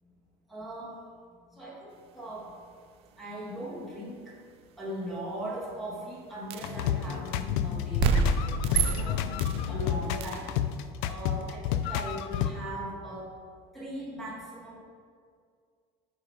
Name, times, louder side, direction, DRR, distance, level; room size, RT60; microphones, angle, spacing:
voice 1, 0.5-1.0 1.5-2.5 3.2-4.4 4.8-9.3 9.7-10.5 11.0-13.4 13.7-14.8, right 1 dB, ahead, -6 dB, 1.7 m, -39 dB
sound 1, 6.5-6.8 8.0-9.6 10.2-10.5, right 5 dB, 45° right, 0.5 m, -27 dB
sound 2, 6.6-12.5, left 10 dB, 85° left, 0.5 m, -30 dB
10.0 x 4.9 x 4.5 m, 2.1 s
cardioid pair, 175°, 13 cm